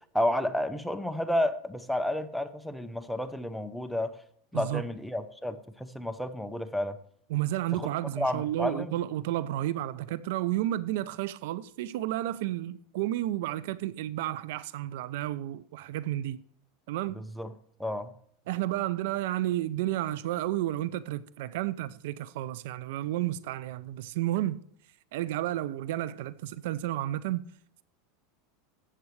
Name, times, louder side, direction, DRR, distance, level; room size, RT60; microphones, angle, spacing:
voice 1, 0.1-4.1 4.5-7.0 7.8-7.9 8.2-8.9 17.1-17.5 17.8-18.1, left 1 dB, ahead, 0.7 m, -31 dB
voice 2, 7.3-16.4 16.9-17.2 18.5-24.6 25.1-27.4, right 14 dB, 70° right, 0.5 m, -31 dB
13.0 x 8.1 x 3.2 m
supercardioid pair, 135°, 0 cm